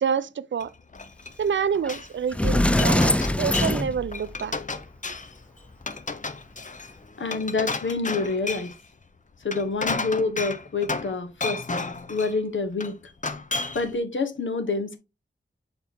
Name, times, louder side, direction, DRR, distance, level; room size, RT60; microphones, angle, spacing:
voice 1, 0.0-0.7 1.4-4.6, right 7 dB, 80° right, 0.4 m, -27 dB
Glass, 0.6-2.1 2.5-3.8 4.1-5.4 5.8-8.8 9.3-11.2 11.4-12.4 12.8-13.9, left 3 dB, 40° left, 0.7 m, -32 dB
Sliding door, 1.8-1.9 2.3-4.6, left 1 dB, 5° left, 0.3 m, -22 dB
voice 2, 7.2-8.7 9.4-11.6 12.1-13.0 13.7-15.0, left 3 dB, 85° left, 1.1 m, -27 dB
7.0 x 3.9 x 3.5 m
wide cardioid pair, 90°, 19 cm